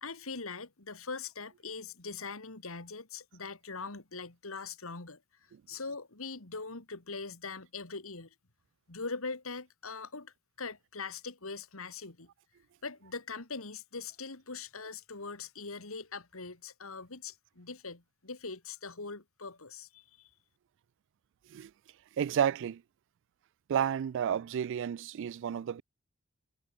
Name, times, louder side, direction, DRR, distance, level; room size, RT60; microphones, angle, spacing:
voice 1, 0.0-5.2 5.7-8.3 8.9-12.3 12.8-20.3, left 4 dB, 70° left, 2.3 m, -42 dB
voice 2, 22.2-22.8 23.7-25.8, right 8 dB, 60° right, 0.3 m, -31 dB
head